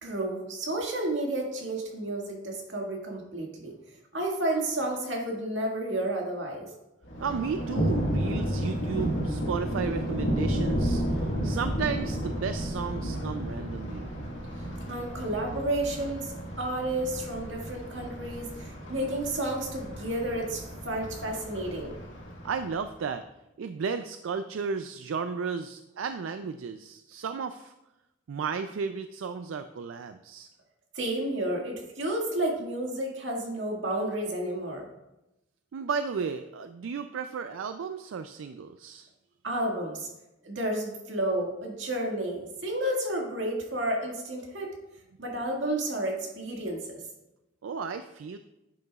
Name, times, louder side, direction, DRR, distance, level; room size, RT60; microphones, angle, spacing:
voice 1, 0.0-3.7 4.1-6.7 14.9-16.3 16.6-20.6 20.9-21.9 31.0-34.9 39.4-40.1 40.4-44.8 45.2-46.8, right 1 dB, 70° right, -1 dB, 1.9 m, -31 dB
Thunder, 7.0-23.0, equal, 75° left, 1.8 m, -32 dB
voice 2, 7.2-14.1 22.4-23.2 23.6-27.7 28.3-30.5 35.7-39.1 47.6-48.4, right 5 dB, 90° right, 9 dB, 0.4 m, -34 dB
10.5 x 8.2 x 2.4 m, 0.94 s
head